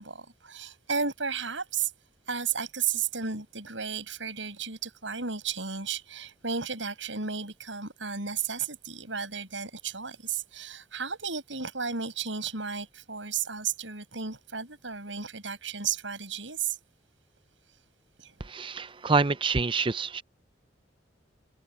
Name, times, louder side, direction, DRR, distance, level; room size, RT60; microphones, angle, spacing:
voice 1, 0.0-1.9 2.3-16.8 18.2-18.3, right 6 dB, 75° right, 6.5 m, -33 dB
voice 2, 18.4-20.2, right 4 dB, 25° right, 0.5 m, -27 dB
head